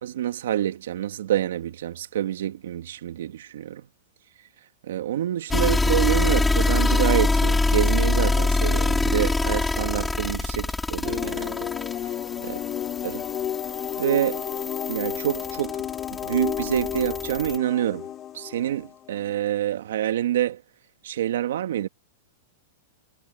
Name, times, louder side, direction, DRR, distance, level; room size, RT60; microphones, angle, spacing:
voice 1, 0.0-3.9 4.8-11.7 12.4-12.6 13.0-13.2 14.0-14.4 14.9-15.8 16.2-18.1 18.3-20.6 21.0-21.9, right 11 dB, 75° right, 2.1 m, -27 dB
sound 1, 5.5-17.6, left 2 dB, 5° left, 1.2 m, -25 dB
sound 2, 11.0-19.4, left 11 dB, 25° left, 1.4 m, -32 dB
supercardioid pair, 155°, 0 cm